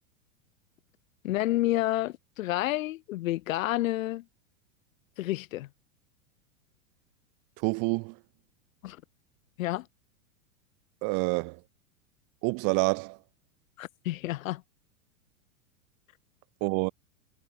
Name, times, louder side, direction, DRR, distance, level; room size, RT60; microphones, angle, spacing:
voice 1, 1.2-4.2 5.2-5.7 8.8-9.0 9.6-9.9 13.8-14.6, left 16 dB, 65° left, 3.5 m, -29 dB
voice 2, 7.6-8.1 11.0-11.6 12.4-13.2 16.6-16.9, right 33 dB, 50° right, 4.4 m, -27 dB
hypercardioid pair, 120°, 42 cm